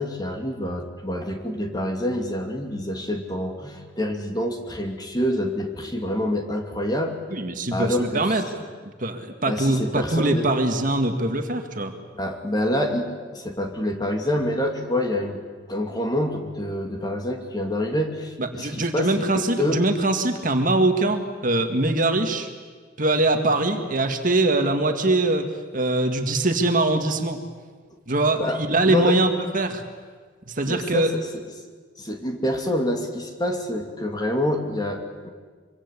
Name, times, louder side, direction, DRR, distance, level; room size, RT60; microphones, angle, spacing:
voice 1, 0.0-7.2 7.7-8.2 9.5-10.5 12.1-15.4 15.7-19.8 28.4-29.2 30.6-31.4 32.0-35.3, left 1 dB, 20° left, 3 dB, 2.7 m, -27 dB
voice 2, 7.3-8.4 9.0-11.9 18.4-22.5 23.0-27.4 28.1-29.8 30.5-31.1, right 2 dB, 45° right, 5 dB, 2.0 m, -22 dB
25.0 x 24.5 x 8.4 m, 1.5 s
head